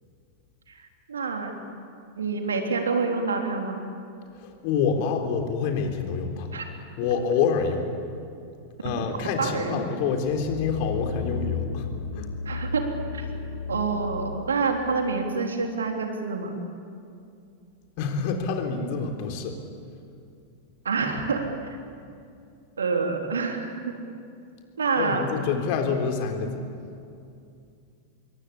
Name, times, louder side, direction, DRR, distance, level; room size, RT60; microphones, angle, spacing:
voice 1, 0.7-1.6 2.2-3.8 6.5-6.7 9.4-9.8 12.5-13.3 13.7-16.6 20.9-21.8 22.8-24.0 24.8-25.3, right 4 dB, 70° right, 3 dB, 3.4 m, -27 dB
voice 2, 4.4-6.5 7.0-7.9 8.8-11.9 12.1-12.3 18.0-19.5 25.0-26.5, left 5 dB, 45° left, 4 dB, 3.7 m, -27 dB
sound 1, 10.3-14.6 15.1-15.2, left 5 dB, 65° left, 1.4 m, -33 dB
27.0 x 23.0 x 8.6 m, 2.5 s
figure-of-eight pair, 90°, 0 cm